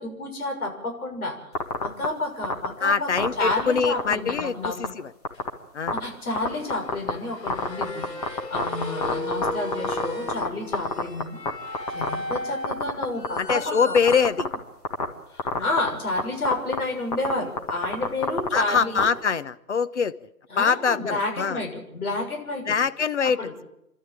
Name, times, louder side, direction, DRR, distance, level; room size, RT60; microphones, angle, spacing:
voice 1, 0.0-1.4 1.8-3.1 3.4-4.9 5.9-11.4 11.9-13.9 14.2-14.3 15.3-19.1 20.5-22.8 23.4-23.5, left 2 dB, 60° left, 2 dB, 6.6 m, -30 dB
sound 1, 1.5-2.1 2.4-2.7 3.2-4.4 4.6-4.9 5.2-5.5 5.9-6.0 6.4-7.1 7.5-10.5 10.7-11.5 11.7-12.4 12.6-13.5 14.0-14.5 14.8-15.0 15.4-15.9 16.2-16.3 16.5-16.8 17.1-17.3 17.6-19.0, left 5 dB, 25° left, 1.8 m, -25 dB
voice 2, 2.8-5.1 5.7-6.0 13.4-14.4 15.5-15.6 18.5-20.1 20.6-21.6 22.7-23.6, left 6 dB, 45° left, 12 dB, 1.0 m, -24 dB
sound 2, 3.1-3.9 5.3-5.5 6.4-14.2, left 1 dB, 80° left, 3.7 m, -36 dB
28.5 x 12.5 x 8.9 m, 0.85 s
figure-of-eight pair, 155°, 49 cm